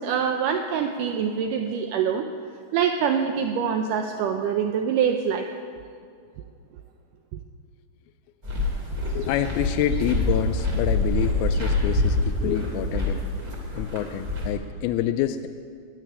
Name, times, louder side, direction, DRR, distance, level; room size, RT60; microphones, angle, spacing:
voice 1, 0.0-2.3 2.7-5.5, right 7 dB, 85° right, 6 dB, 1.8 m, -25 dB
sound 1, 8.4-14.5, left 2 dB, 25° right, 2.6 m, -26 dB
voice 2, 9.2-13.3 13.7-15.5, left 11 dB, 85° left, 9 dB, 2.4 m, -27 dB
12.5 x 9.3 x 9.9 m, 2.3 s
omnidirectional pair, 4.5 m